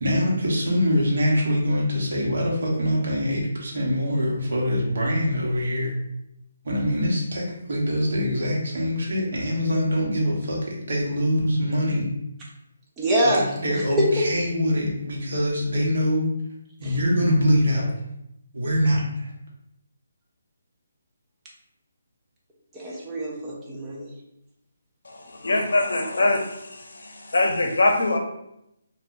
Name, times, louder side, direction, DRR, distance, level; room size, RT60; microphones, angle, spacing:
voice 1, 0.0-5.9 6.6-12.1 13.2-16.3 16.8-17.9 18.5-19.3, equal, 50° right, -3 dB, 0.9 m, -24 dB
voice 2, 13.0-13.5 14.0-14.2 22.7-24.1, equal, 10° right, -4 dB, 0.4 m, -24 dB
voice 3, 25.0-28.2, left 2 dB, 75° left, 3 dB, 0.6 m, -23 dB
2.5 x 2.2 x 3.6 m, 0.82 s
hypercardioid pair, 175°, 0 cm